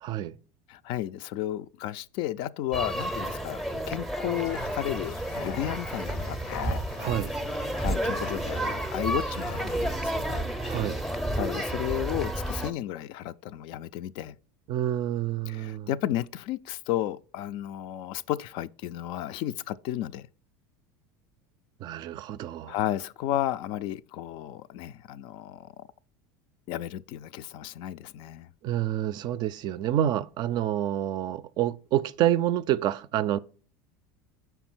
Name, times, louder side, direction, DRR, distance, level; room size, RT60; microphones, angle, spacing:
voice 1, 0.0-0.3 7.0-7.3 10.6-11.0 14.7-15.9 21.8-22.8 28.6-33.4, right 12 dB, 45° right, 0.4 m, -28 dB
voice 2, 0.7-6.6 7.8-10.5 11.3-14.3 15.5-20.3 22.7-25.9 26.7-28.5, left 13 dB, 60° left, 0.3 m, -33 dB
sound 1, 2.7-12.7, right 1 dB, ahead, 0.6 m, -31 dB
sound 2, 4.3-9.9, left 6 dB, 85° left, 0.7 m, -43 dB
5.5 x 4.5 x 6.0 m
supercardioid pair, 110°, 10 cm